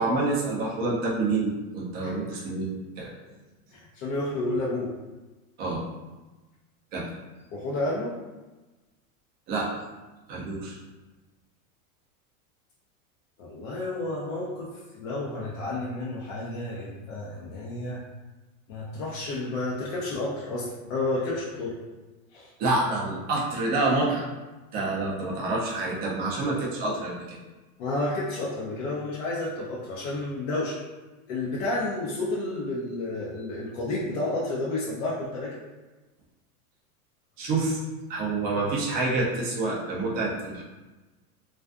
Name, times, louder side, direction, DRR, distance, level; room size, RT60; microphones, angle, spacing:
voice 1, 0.0-2.7 3.0-3.1 5.6-5.8 6.9-7.1 9.5-9.7 10.3-10.8 22.6-24.3 24.7-27.4 37.4-37.8 38.1-40.6, right 2 dB, 25° right, -4 dB, 0.4 m, -27 dB
voice 2, 2.0-2.4 3.7-4.9 7.5-8.1 13.4-14.7 15.0-18.0 18.7-21.7 22.3-22.5 27.8-30.8 31.3-35.6, left 2 dB, 60° left, -6 dB, 0.7 m, -31 dB
2.5 x 2.3 x 2.3 m, 1.2 s
supercardioid pair, 125°, 45 cm